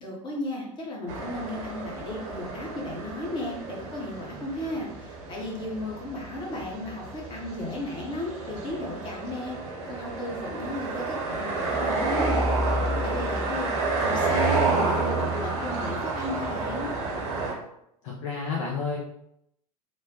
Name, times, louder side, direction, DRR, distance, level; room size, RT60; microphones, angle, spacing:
voice 1, 0.0-9.6 9.9-12.4 13.0-13.7 14.0-16.9, left 1 dB, 25° left, -2 dB, 0.9 m, -34 dB
sound 1, 1.1-17.5, right 3 dB, 50° right, 1.0 m, -30 dB
voice 2, 18.0-19.0, left 5 dB, 50° left, -3 dB, 0.6 m, -30 dB
3.1 x 2.1 x 2.7 m, 0.76 s
figure-of-eight pair, 85°, 19 cm